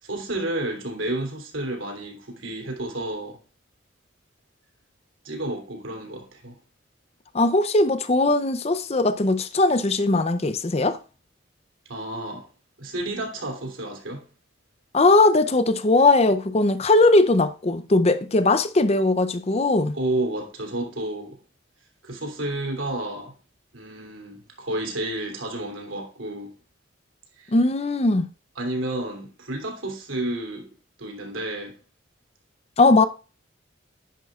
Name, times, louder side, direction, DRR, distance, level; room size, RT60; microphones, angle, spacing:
voice 1, 0.0-3.4 5.2-6.6 11.9-12.5 12.8-14.2 19.9-21.4 22.0-23.3 23.7-26.5 27.4-27.5 28.6-30.7 31.0-31.7, right 1 dB, 85° right, 3.0 m, -31 dB
voice 2, 7.3-11.0 14.9-20.0 27.5-28.3 32.8-33.1, left 2 dB, 30° left, 0.6 m, -19 dB
10.5 x 10.5 x 2.4 m
head